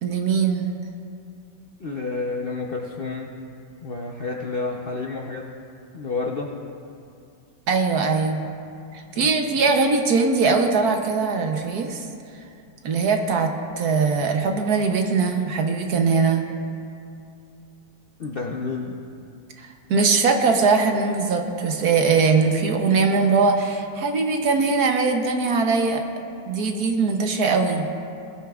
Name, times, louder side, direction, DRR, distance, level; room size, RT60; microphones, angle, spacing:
voice 1, 0.0-0.8 7.7-8.4 8.9-12.0 12.8-13.5 13.8-16.5 19.6-26.0 26.5-27.9, right 4 dB, 60° right, 4 dB, 1.3 m, -21 dB
voice 2, 1.8-3.3 3.8-5.5 5.9-6.5 9.1-9.3 18.2-19.0, left 4 dB, 55° left, -1 dB, 0.6 m, -30 dB
21.0 x 12.5 x 2.4 m, 2.5 s
omnidirectional pair, 1.9 m